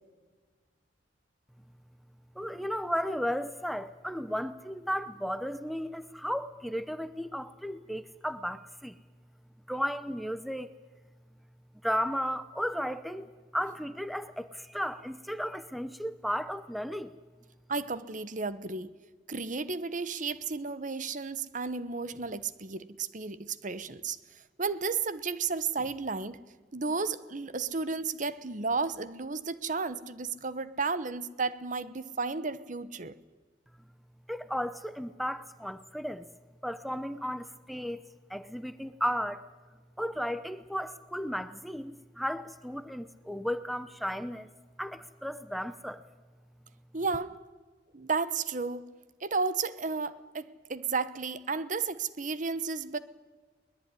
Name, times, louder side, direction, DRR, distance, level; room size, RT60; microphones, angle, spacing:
voice 1, 2.4-9.0 9.7-10.7 11.8-17.1 34.3-36.3 36.6-38.0 38.3-39.4 40.0-44.5 44.8-46.0, equal, ahead, 0.8 m, -34 dB
voice 2, 17.7-18.9 19.3-24.2 24.6-26.4 26.7-33.2 46.9-47.4 47.9-48.9 49.2-53.0, right 4 dB, 45° right, 1.0 m, -33 dB
22.0 x 20.5 x 9.8 m
head